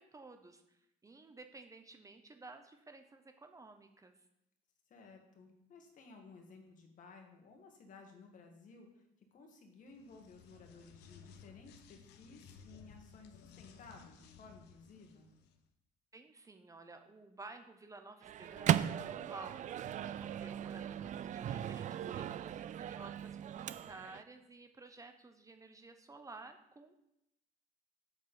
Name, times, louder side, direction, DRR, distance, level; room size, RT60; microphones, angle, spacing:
voice 1, 0.0-4.2 16.1-26.9, right 3 dB, 20° right, 6 dB, 0.9 m, -54 dB
voice 2, 4.9-15.3, left 4 dB, 50° left, 3 dB, 1.9 m, -57 dB
sound 1, 9.9-15.6, left 6 dB, 85° left, 0.9 m, -58 dB
Microwave oven, 18.2-24.2, right 10 dB, 50° right, 0.4 m, -37 dB
8.0 x 4.3 x 6.9 m, 0.81 s
cardioid pair, 110°, 17 cm